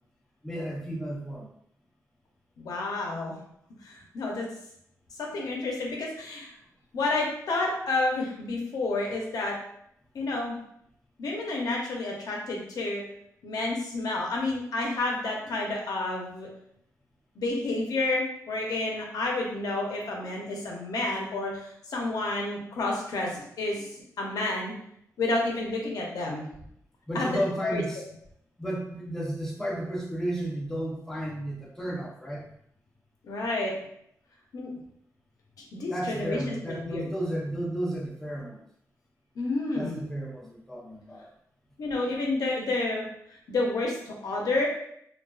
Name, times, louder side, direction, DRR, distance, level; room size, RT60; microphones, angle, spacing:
voice 1, 0.4-1.5 27.1-28.0 28.6-32.5 35.9-38.6 39.7-41.3, right 1 dB, 5° left, -4 dB, 0.6 m, -33 dB
voice 2, 2.6-3.4 3.8-4.5 5.2-6.5 6.9-9.5 10.1-10.6 11.2-13.0 13.4-16.5 17.4-24.7 25.2-26.5 27.1-27.3 27.6-27.8 33.2-33.7 34.5-34.7 35.7-37.1 39.4-40.0 41.8-44.7, left 2 dB, 80° left, -1 dB, 0.6 m, -30 dB
2.3 x 2.3 x 2.3 m, 0.72 s
cardioid pair, 95°, 6 cm